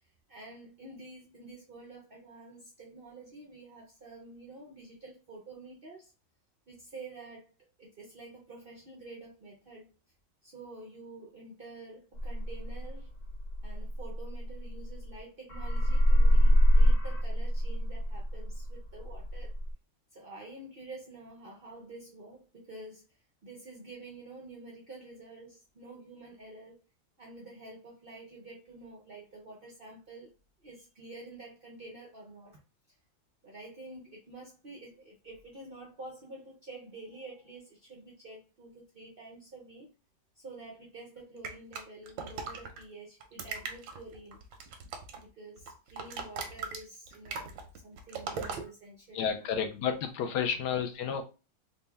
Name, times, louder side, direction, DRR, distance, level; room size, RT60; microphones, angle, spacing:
voice 1, 0.3-6.1 6.7-7.5 7.8-9.9 10.4-13.1 13.6-19.5 20.1-23.0 23.4-26.8 27.2-30.3 30.6-32.6 33.4-39.9 40.4-44.4 45.1-47.5 47.8-49.7 50.2-50.4, right 2 dB, 70° right, 0.5 m, -48 dB
sound 1, 12.2-15.2 15.5-19.7, equal, 40° left, 1.0 m, -25 dB
sound 2, 41.4-42.8 43.2-45.3 45.6-48.6, right 5 dB, 90° right, 1.4 m, -39 dB
voice 2, 49.1-51.2, left 7 dB, 75° left, 1.1 m, -31 dB
4.0 x 2.1 x 3.3 m
omnidirectional pair, 1.9 m